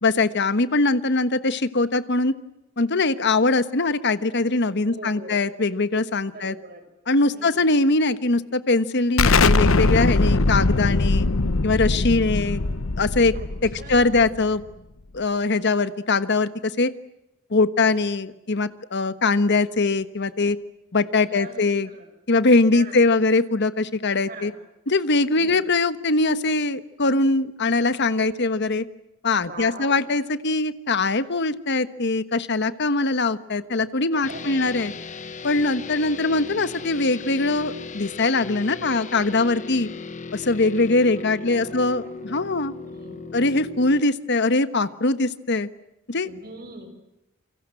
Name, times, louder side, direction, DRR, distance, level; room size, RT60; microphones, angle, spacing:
voice 1, 0.0-2.3 2.8-6.5 7.1-11.3 11.6-12.6 13.0-13.3 13.6-14.6 15.1-16.9 17.5-20.6 20.9-21.9 22.3-24.5 24.9-28.8 29.2-34.9 35.4-39.9 40.3-42.7 43.3-45.7 46.1-46.3, left 3 dB, 60° left, 13 dB, 1.3 m, -22 dB
voice 2, 4.9-5.4 6.3-6.9 7.2-7.8 13.3-14.1 21.3-22.1 22.7-23.1 24.2-24.6 25.3-25.6 29.4-30.0 34.1-34.8 36.0-36.4 40.5-42.5 42.8-43.4 46.2-46.9, right 2 dB, 50° right, 7 dB, 6.2 m, -42 dB
Explosion, 9.2-14.6, left 3 dB, 85° left, 1.0 m, -21 dB
sound 1, 34.2-44.0, left 4 dB, 40° left, 1.1 m, -37 dB
28.5 x 24.0 x 7.8 m, 0.91 s
head